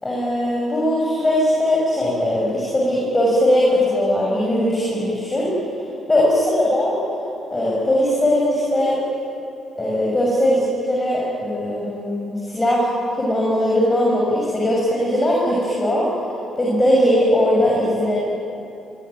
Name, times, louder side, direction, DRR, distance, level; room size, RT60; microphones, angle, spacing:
voice 1, 0.0-5.5 6.1-7.0 7.5-9.0 9.8-16.1 16.6-18.2, left 1 dB, 20° left, -4 dB, 7.0 m, -19 dB
24.0 x 24.0 x 9.4 m, 2.8 s
cardioid pair, 90°, 0 cm